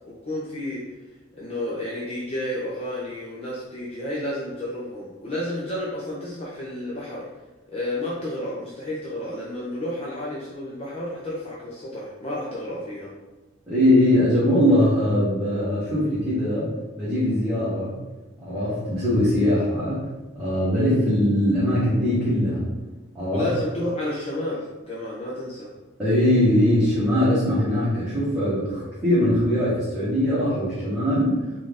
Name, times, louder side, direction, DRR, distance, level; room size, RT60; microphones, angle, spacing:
voice 1, 0.0-0.8 1.3-7.3 7.7-13.1 23.3-25.7, left 1 dB, 30° left, -6 dB, 0.5 m, -31 dB
voice 2, 13.7-16.7 17.0-17.9 18.4-20.0 20.3-22.6 23.1-23.5 26.0-31.4, left 1 dB, 10° right, -13 dB, 1.2 m, -21 dB
4.2 x 2.4 x 3.5 m, 1.1 s
head